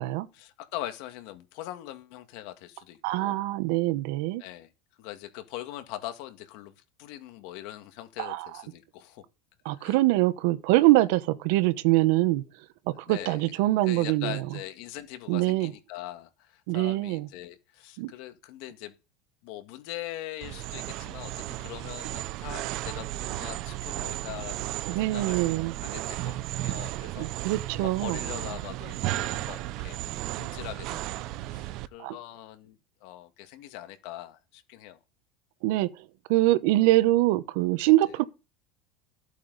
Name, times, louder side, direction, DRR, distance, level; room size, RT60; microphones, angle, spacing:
voice 1, 0.3-3.4 4.4-4.7 5.0-6.7 7.0-9.2 9.7-10.0 13.1-13.5 13.8-18.9 19.4-25.4 25.8-27.3 27.7-30.0 30.4-31.2 31.5-35.0, left 14 dB, 65° left, 1.8 m, -42 dB
voice 2, 3.0-4.4 8.2-8.5 9.6-12.4 12.9-14.4 15.3-15.7 16.7-17.3 18.0-18.1 24.9-25.7 27.2-28.2 32.0-32.2 35.6-38.2, right 17 dB, 70° right, 1.0 m, -24 dB
sound 1, 20.4-31.9, right 16 dB, 50° right, 0.7 m, -34 dB
14.0 x 8.4 x 4.1 m
supercardioid pair, 150°, 0 cm